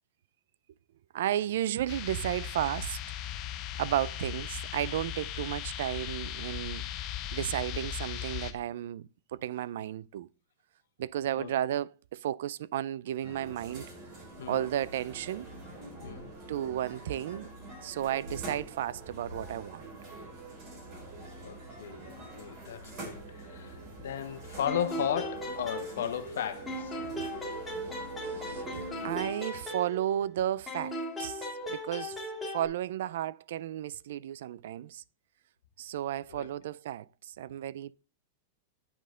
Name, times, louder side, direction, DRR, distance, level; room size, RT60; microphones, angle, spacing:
voice 1, 1.1-3.0 3.8-6.8 7.3-10.3 11.0-13.9 14.5-15.5 16.5-17.5 17.8-19.9 28.2-32.2 32.5-35.0 35.8-37.9, right 12 dB, 65° right, 0.3 m, -33 dB
sound 1, 1.9-8.5, left 11 dB, 30° left, 0.7 m, -38 dB
sound 2, 13.2-29.3, right 2 dB, 35° right, 3.5 m, -45 dB
voice 2, 14.4-14.7 16.0-16.3 21.4-27.0 36.3-36.5, left 9 dB, 80° left, 1.1 m, -35 dB
sound 3, 24.7-26.4 26.7-30.3 30.7-32.7, equal, 10° left, 1.8 m, -37 dB
8.6 x 5.5 x 3.7 m
supercardioid pair, 170°, 0 cm